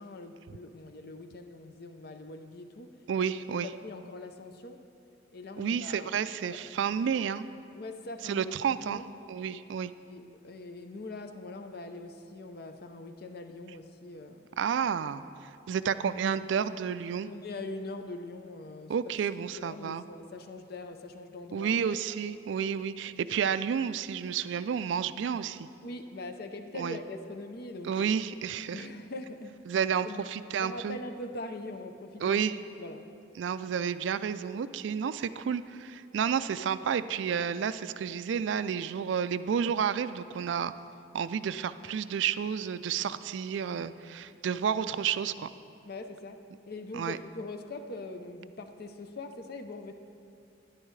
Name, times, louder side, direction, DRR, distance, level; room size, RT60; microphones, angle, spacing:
voice 1, 0.0-3.3 3.6-4.8 5.3-6.6 7.7-8.5 8.8-9.1 10.0-14.5 17.2-18.9 19.6-21.8 25.8-28.1 28.7-29.6 30.0-30.2 30.6-32.4 32.8-33.0 45.8-49.9, left 2 dB, 55° left, 7 dB, 0.6 m, -42 dB
voice 2, 3.1-3.7 5.6-7.4 8.2-9.0 9.3-9.9 14.6-15.2 15.7-17.3 18.9-20.0 21.5-25.7 26.8-27.0 27.8-28.9 29.7-31.0 32.2-32.5 33.4-40.7 41.1-45.5 46.9-47.2, right 7 dB, 70° right, 14 dB, 0.3 m, -31 dB
12.5 x 10.5 x 3.2 m, 2.5 s
head